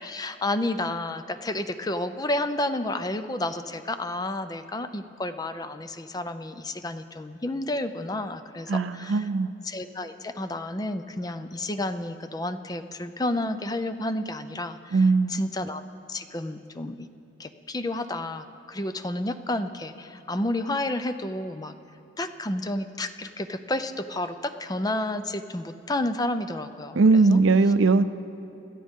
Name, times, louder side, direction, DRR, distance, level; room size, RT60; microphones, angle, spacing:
voice 1, 0.0-9.3 9.6-15.8 16.1-17.1 17.4-21.7 22.2-27.4, left 1 dB, 20° left, 10 dB, 0.5 m, -31 dB
voice 2, 8.7-9.5 14.9-15.4 27.0-28.0, right 3 dB, 90° right, 13 dB, 0.5 m, -20 dB
27.0 x 13.0 x 3.7 m, 2.8 s
head